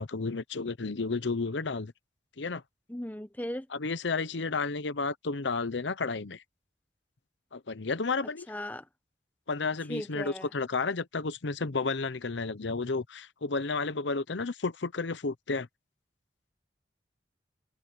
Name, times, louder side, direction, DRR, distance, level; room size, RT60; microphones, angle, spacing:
voice 1, 0.0-1.9 2.4-2.6 3.7-6.4 7.5-8.5 9.5-15.7, left 4 dB, 80° left, 0.8 m, -32 dB
voice 2, 2.9-3.7 8.5-8.8 9.9-10.5, left 1 dB, 10° left, 1.1 m, -37 dB
head